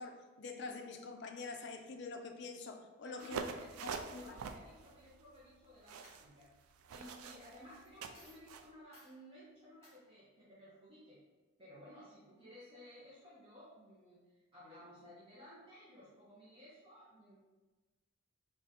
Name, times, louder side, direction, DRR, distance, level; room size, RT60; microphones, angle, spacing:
voice 1, 0.0-3.4 3.8-4.3, left 3 dB, 50° left, 4 dB, 0.4 m, -46 dB
voice 2, 3.0-6.5 6.9-11.2 11.6-17.4, equal, 25° right, -9 dB, 0.8 m, -57 dB
sound 1, 3.2-8.7, right 5 dB, 75° right, 0.3 m, -46 dB
Coin (dropping), 5.4-5.7 6.0-6.6 7.0-7.1 7.8-7.9 8.1-8.4 8.9-9.1 9.8-10.0, equal, 15° left, 1.3 m, -62 dB
3.8 x 2.4 x 4.1 m, 1.2 s
head